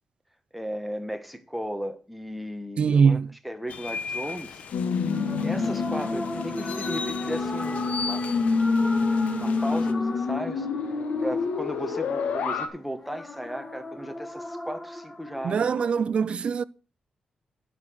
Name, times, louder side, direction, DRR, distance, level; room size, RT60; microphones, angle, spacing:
voice 1, 0.5-4.6 4.9-5.0 5.4-8.8 9.4-10.9 11.2-15.8, equal, ahead, 1.3 m, -36 dB
voice 2, 2.8-3.3 15.4-16.6, right 6 dB, 50° right, 0.5 m, -22 dB
sound 1, 3.7-9.9, left 5 dB, 70° left, 1.2 m, -38 dB
sound 2, 4.7-12.7, left 4 dB, 90° left, 1.8 m, -27 dB
sound 3, 5.1-16.0, left 1 dB, 20° left, 1.6 m, -38 dB
10.5 x 7.4 x 6.3 m
wide cardioid pair, 145°, 2 cm